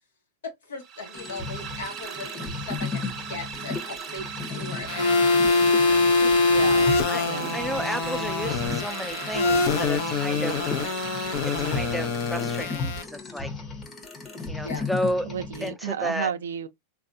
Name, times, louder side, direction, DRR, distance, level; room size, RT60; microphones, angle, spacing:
voice 1, 0.4-5.2 5.8-6.3 14.6-14.9, left 3 dB, 85° left, 1.1 m, -38 dB
sound 1, 0.8-12.7, right 8 dB, 35° right, 0.7 m, -38 dB
sound 2, 1.1-15.7, left 4 dB, 25° left, 0.9 m, -36 dB
sound 3, 4.9-13.0, left 3 dB, 65° left, 0.8 m, -24 dB
voice 2, 6.5-7.6 15.2-16.7, right 8 dB, 85° right, 0.4 m, -32 dB
voice 3, 7.5-10.6 11.4-13.6 14.5-15.3 15.6-16.3, equal, ahead, 0.4 m, -32 dB
3.3 x 2.4 x 2.6 m
hypercardioid pair, 115°, 0 cm